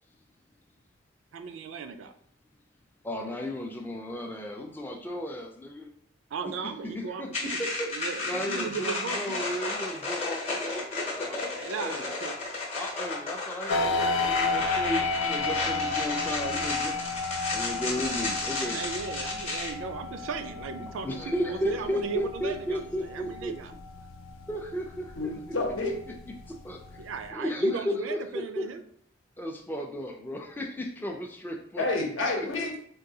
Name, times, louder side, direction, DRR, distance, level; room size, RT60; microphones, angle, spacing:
voice 1, 1.3-2.1 6.3-9.5 11.6-12.4 18.7-23.7 27.0-28.8, right 5 dB, 75° right, 8 dB, 0.4 m, -36 dB
voice 2, 3.0-5.9 6.6-7.9 8.2-11.4 11.8-12.2 12.7-17.1 17.5-18.8 21.0-23.6 24.5-25.3 26.5-27.0 27.3-28.6 29.4-32.0, equal, 10° left, 2 dB, 0.3 m, -34 dB
sound 1, 7.3-19.7, left 3 dB, 30° left, 0.7 m, -33 dB
sound 2, 13.7-27.3, left 3 dB, 90° left, 0.4 m, -33 dB
voice 3, 25.2-25.9 31.8-32.8, left 2 dB, 75° left, 1 dB, 0.8 m, -29 dB
3.7 x 2.3 x 2.7 m, 0.66 s
head